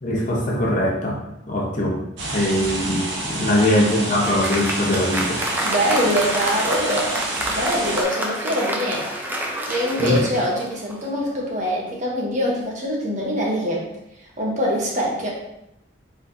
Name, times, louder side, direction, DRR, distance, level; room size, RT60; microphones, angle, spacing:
voice 1, 0.0-1.2 1.5-2.0 2.2-5.4 10.0-10.2, left 1 dB, 40° left, -3 dB, 1.0 m, -21 dB
sound 1, 2.2-8.0, right 2 dB, 80° right, 1.0 m, -29 dB
Applause, 3.8-11.2, right 1 dB, 10° right, 0.5 m, -28 dB
voice 2, 5.6-7.2 7.5-9.2 9.7-13.9 14.4-15.3, equal, 40° right, -3 dB, 1.0 m, -24 dB
4.7 x 4.0 x 2.7 m, 0.85 s
head